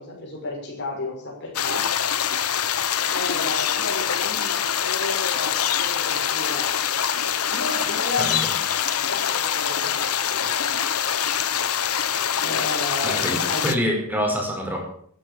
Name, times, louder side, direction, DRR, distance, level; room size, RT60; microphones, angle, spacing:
voice 1, 0.0-1.8 3.1-6.7 7.5-8.3 9.1-10.5 12.4-13.6, left 2 dB, 55° left, -3 dB, 6.1 m, -32 dB
sound 1, 1.5-13.7, left 9 dB, 85° left, 1.2 m, -24 dB
voice 2, 13.0-14.8, equal, 10° right, 1 dB, 5.3 m, -26 dB
14.0 x 10.5 x 8.9 m, 0.63 s
head